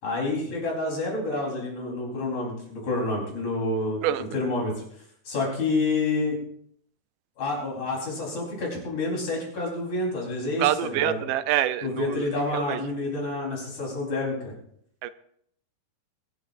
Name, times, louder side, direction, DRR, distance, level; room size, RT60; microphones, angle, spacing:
voice 1, 0.0-4.7 5.3-6.4 7.4-11.2 11.8-14.5, left 2 dB, 65° left, -2 dB, 5.7 m, -28 dB
voice 2, 10.6-12.8 15.0-15.1, right 12 dB, 85° right, 12 dB, 2.3 m, -26 dB
23.0 x 13.0 x 2.6 m, 0.67 s
omnidirectional pair, 3.7 m